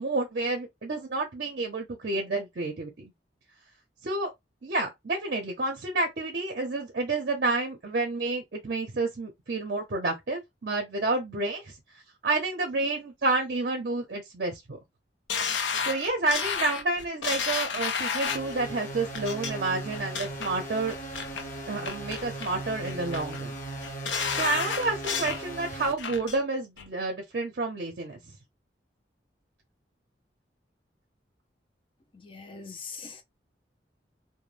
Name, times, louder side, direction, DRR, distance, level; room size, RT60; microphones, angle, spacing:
voice 1, 0.0-3.1 4.0-4.3 4.6-11.7 12.2-14.8 15.8-20.9 21.7-23.6 24.4-28.2, right 3 dB, 55° right, 0.5 m, -29 dB
sound 1, 15.3-18.5 19.1-19.5 19.9-20.5 20.9-21.4 21.8-22.5 22.8-23.4 23.8-25.4 25.8-26.4 26.8-26.9, left 6 dB, 85° left, 0.5 m, -31 dB
sound 2, 18.3-25.9, right 1 dB, 45° left, 0.9 m, -38 dB
voice 2, 32.1-33.2, left 5 dB, 30° left, 0.4 m, -42 dB
2.2 x 2.1 x 3.1 m
head